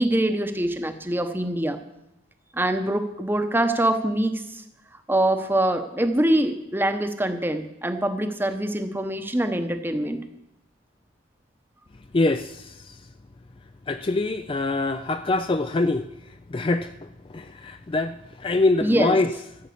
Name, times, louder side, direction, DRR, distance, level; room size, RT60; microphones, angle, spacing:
voice 1, 0.0-1.8 2.5-4.6 5.1-10.2 18.8-19.2, right 1 dB, 10° right, 8 dB, 0.9 m, -24 dB
voice 2, 12.1-13.0 13.9-16.1 16.5-19.3, left 2 dB, 25° left, 9 dB, 0.4 m, -24 dB
13.5 x 7.4 x 8.4 m, 0.87 s
head